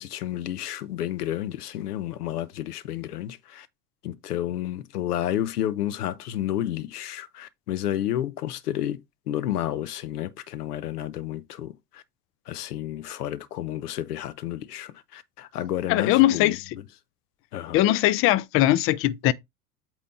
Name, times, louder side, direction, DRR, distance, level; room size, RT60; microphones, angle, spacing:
voice 1, 0.0-3.7 4.0-12.0 12.5-16.6 17.5-17.8, left 12 dB, 75° left, 0.9 m, -31 dB
voice 2, 15.9-16.6 17.7-19.3, left 15 dB, 30° left, 0.5 m, -20 dB
8.4 x 3.1 x 4.1 m
hypercardioid pair, 85°, 47 cm